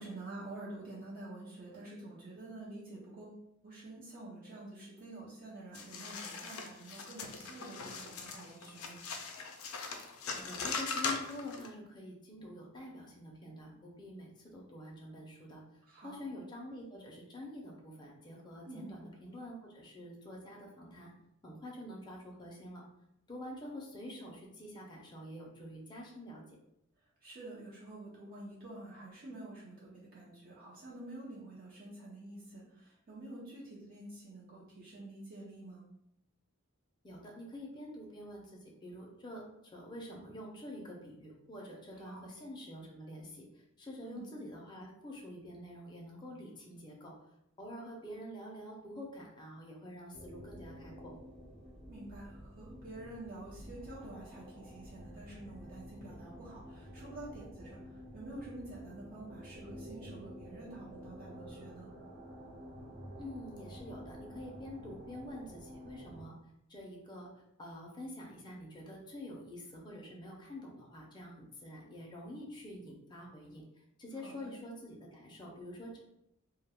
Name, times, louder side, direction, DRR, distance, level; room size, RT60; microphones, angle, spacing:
voice 1, 0.0-9.0 15.8-16.2 18.6-18.9 27.2-35.8 42.0-42.4 44.0-44.3 51.9-61.9 74.2-74.5, right 2 dB, 45° right, -5 dB, 0.6 m, -48 dB
sound 1, 5.7-11.7, left 4 dB, 75° left, 0.4 m, -40 dB
voice 2, 10.3-15.6 16.0-21.1 21.4-22.8 23.3-26.4 37.0-39.4 39.7-43.4 43.8-47.1 47.6-51.1 63.2-66.3 66.7-67.3 67.6-73.6 74.0-76.0, left 1 dB, 20° left, -2 dB, 0.5 m, -47 dB
sound 2, 50.1-66.3, equal, 65° right, 1.0 m, -50 dB
2.2 x 2.2 x 3.4 m, 0.79 s
head